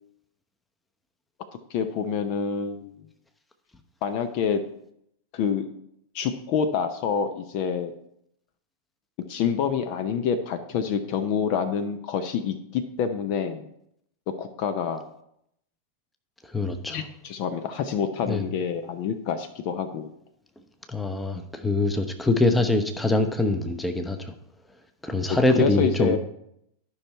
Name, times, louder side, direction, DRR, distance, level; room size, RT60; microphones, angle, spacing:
voice 1, 1.7-2.9 4.0-4.6 5.3-5.6 6.1-7.9 9.3-13.7 14.4-15.1 16.9-20.1 25.5-26.2, left 7 dB, 45° left, 9 dB, 0.7 m, -27 dB
voice 2, 16.5-17.0 18.3-18.4 20.9-24.3 25.0-26.2, left 2 dB, 5° left, 6 dB, 0.9 m, -24 dB
11.5 x 5.7 x 4.4 m, 0.76 s
figure-of-eight pair, 90°, 0 cm